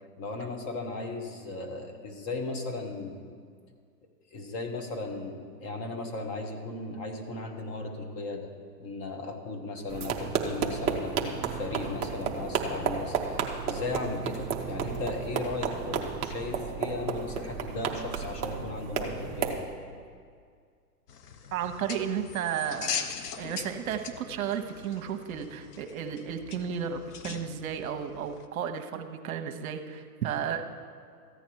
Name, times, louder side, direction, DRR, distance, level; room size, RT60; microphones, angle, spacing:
voice 1, 0.2-3.2 4.3-8.5 8.8-19.7, left 3 dB, 30° left, 4 dB, 1.2 m, -36 dB
sound 1, 9.9-19.6, right 6 dB, 15° right, 0.5 m, -32 dB
sound 2, 21.1-28.5, left 7 dB, 70° left, 1.0 m, -40 dB
voice 2, 21.5-23.1 23.4-30.6, right 8 dB, 60° right, 7 dB, 1.0 m, -33 dB
14.0 x 9.3 x 4.6 m, 2.1 s
hypercardioid pair, 130°, 48 cm